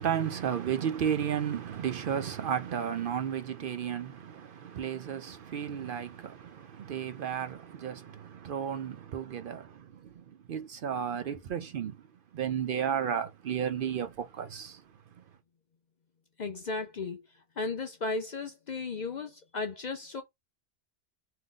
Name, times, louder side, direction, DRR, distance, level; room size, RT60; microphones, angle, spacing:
voice 1, 0.0-12.0 12.3-14.8, right 8 dB, 60° right, 0.6 m, -33 dB
voice 2, 16.4-17.2 17.6-20.2, left 3 dB, 55° left, 0.5 m, -35 dB
3.7 x 2.8 x 3.7 m
omnidirectional pair, 1.2 m